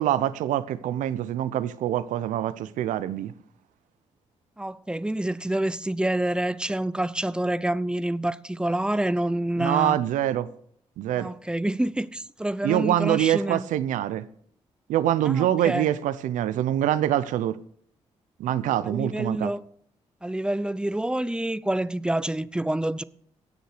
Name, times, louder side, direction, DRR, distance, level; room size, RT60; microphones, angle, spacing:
voice 1, 0.0-3.3 9.6-10.5 11.0-11.3 12.6-14.2 14.9-17.6 18.4-19.5, right 12 dB, 85° right, 0.6 m, -25 dB
voice 2, 4.6-10.0 11.1-13.7 15.2-15.9 18.8-19.6 20.2-23.0, right 1 dB, 5° right, 0.6 m, -27 dB
17.5 x 6.5 x 4.9 m
supercardioid pair, 50°, 13 cm